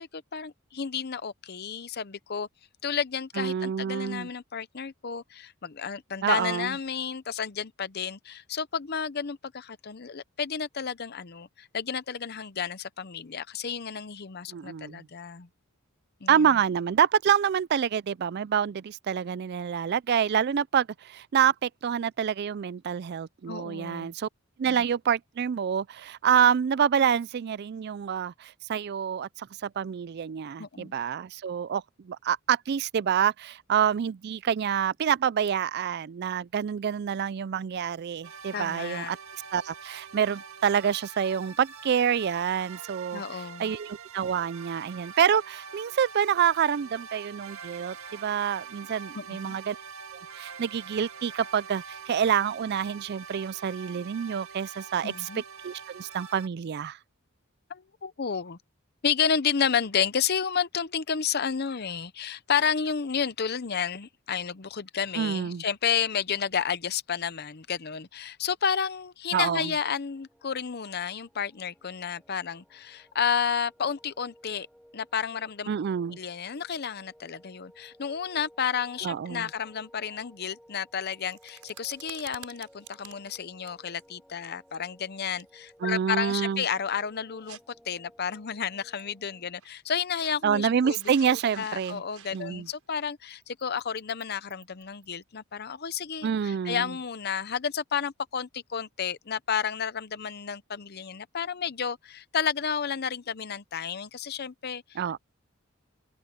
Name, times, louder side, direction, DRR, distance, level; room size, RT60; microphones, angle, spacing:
voice 1, 0.0-2.5 2.8-15.5 16.2-16.5 23.5-24.1 24.6-24.8 30.6-30.9 38.5-39.1 43.1-43.7 49.1-49.6 55.0-55.4 57.7-58.6 59.0-74.7 74.9-75.7 76.1-87.6 87.9-91.0 91.3-105.2, left 7 dB, 45° left, 0.7 m, -31 dB
voice 2, 3.4-4.3 6.2-6.7 14.5-15.1 16.3-24.3 24.6-39.2 39.5-43.2 43.6-49.8 50.4-55.3 55.6-57.0 65.2-65.6 69.3-69.7 75.7-76.2 79.0-79.5 85.8-86.6 90.4-92.0 92.3-92.7 96.2-96.9 105.0-105.2, right 8 dB, 50° right, 0.3 m, -27 dB
sound 1, 38.2-56.5, right 6 dB, 70° right, 1.7 m, -44 dB
sound 2, 70.1-89.5, equal, ahead, 7.6 m, -58 dB
sound 3, 81.1-84.0 84.4-84.8 85.4-85.7 86.5-86.6 87.4-87.6 88.3-88.4 89.0-89.1 89.6-90.4 90.7-95.2, right 10 dB, 90° right, 5.4 m, -50 dB
open air
head